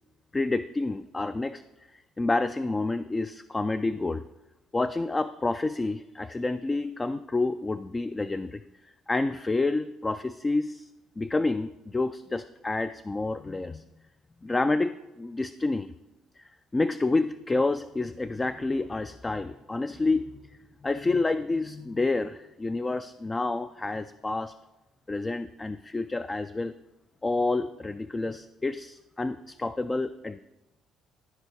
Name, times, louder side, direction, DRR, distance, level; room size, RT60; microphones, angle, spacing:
voice 1, 0.3-1.6 1.9-4.2 4.7-8.6 9.1-10.9 11.2-13.8 14.4-15.9 16.4-20.3 20.8-24.5 25.1-26.7 27.2-30.4, left 3 dB, 20° left, 12 dB, 0.3 m, -29 dB
13.0 x 4.8 x 4.5 m, 1.0 s
supercardioid pair, 80°, 0 cm